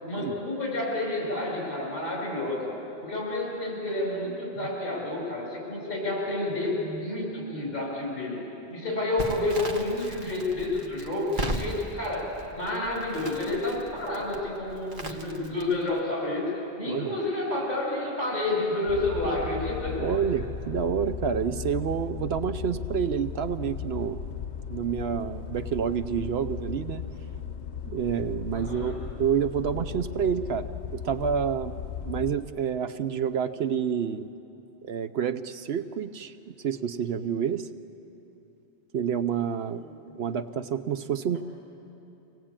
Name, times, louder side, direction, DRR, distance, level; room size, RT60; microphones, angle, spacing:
voice 1, 0.0-2.7 3.0-8.4 8.7-16.5 16.8-20.1 28.5-28.9, left 2 dB, 55° left, -2 dB, 7.6 m, -30 dB
Crackle, 9.2-16.0, right 1 dB, 45° right, 1.7 m, -37 dB
sound 1, 18.9-32.3, left 8 dB, 75° left, 1.1 m, -36 dB
voice 2, 20.0-24.2 24.7-27.0 27.9-31.7 32.0-34.3 34.8-37.7 38.9-39.8 40.2-41.4, right 7 dB, 70° right, 11 dB, 0.9 m, -28 dB
25.5 x 18.5 x 8.8 m, 2.9 s
omnidirectional pair, 1.1 m